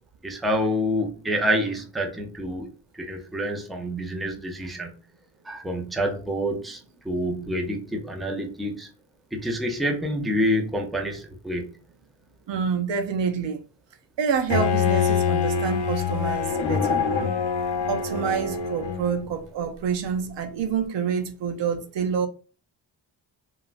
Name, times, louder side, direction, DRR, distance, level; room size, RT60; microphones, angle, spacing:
voice 1, 0.2-2.7 3.0-4.9 5.5-8.9 9.3-11.7, equal, ahead, 0.5 m, -27 dB
voice 2, 12.5-13.6 14.2-17.0 17.9-22.3, right 6 dB, 70° right, 0.6 m, -27 dB
Bowed string instrument, 14.5-19.3, left 6 dB, 65° left, 0.8 m, -25 dB
3.0 x 2.4 x 2.5 m
cardioid pair, 95°, 46 cm